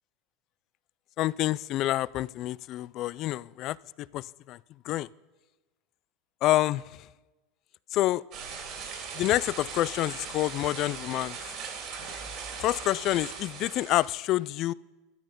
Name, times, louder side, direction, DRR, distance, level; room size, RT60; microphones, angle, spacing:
voice 1, 1.2-4.6 4.8-5.1 6.4-7.1 7.9-8.2 9.1-11.4 12.6-14.7, left 15 dB, 50° left, 21 dB, 0.3 m, -28 dB
sound 1, 8.3-14.1, right 5 dB, 50° right, 3.1 m, -39 dB
12.5 x 10.5 x 5.3 m, 1.2 s
supercardioid pair, 105°, 0 cm